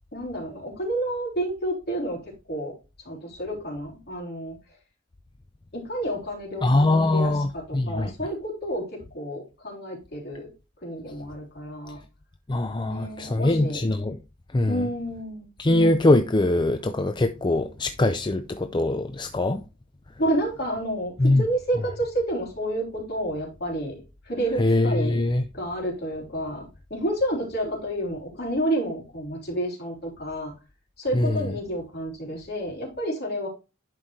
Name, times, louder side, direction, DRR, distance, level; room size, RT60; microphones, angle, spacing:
voice 1, 0.1-2.2 2.5-2.7 3.1-4.6 5.7-10.5 10.8-12.0 12.8-13.8 14.7-15.5 20.2-24.0 24.3-25.2 25.5-26.7 26.9-30.5 31.0-33.5, right 1 dB, 50° left, 3.6 m, -30 dB
voice 2, 6.6-8.1 12.5-14.2 14.5-14.8 15.6-19.6 21.2-21.4 24.6-25.4 31.1-31.5, left 2 dB, 25° left, 0.5 m, -22 dB
11.0 x 5.1 x 3.1 m
head